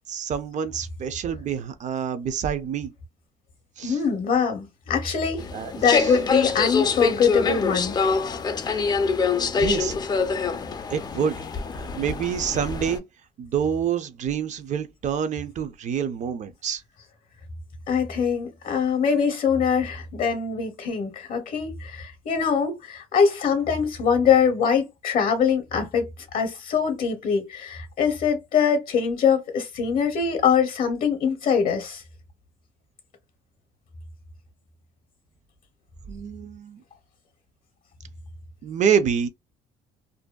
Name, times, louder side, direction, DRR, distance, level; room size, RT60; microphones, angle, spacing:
voice 1, 0.1-2.9 3.8-4.0 5.5-6.1 9.5-9.9 10.9-11.4 12.0-13.0 13.4-16.8 36.1-36.8 38.6-39.3, right 7 dB, 45° right, 0.4 m, -27 dB
voice 2, 3.8-5.4 5.7-7.9 17.9-26.1 26.3-32.0, left 6 dB, 55° left, 0.6 m, -23 dB
sound 1, 5.4-13.0, left 5 dB, 25° left, 0.3 m, -25 dB
2.6 x 2.2 x 2.2 m
cardioid pair, 110°, 17 cm